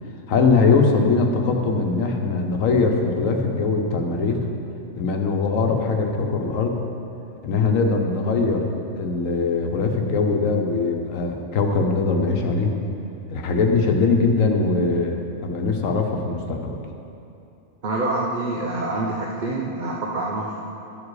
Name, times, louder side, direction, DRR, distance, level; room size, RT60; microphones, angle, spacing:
voice 1, 0.3-4.4 5.0-6.8 7.4-8.7 9.0-12.7 13.3-16.8, left 4 dB, 80° left, 3 dB, 1.3 m, -21 dB
voice 2, 17.8-20.6, right 2 dB, 40° right, -2 dB, 0.8 m, -26 dB
12.5 x 7.4 x 4.8 m, 2.7 s
omnidirectional pair, 1.4 m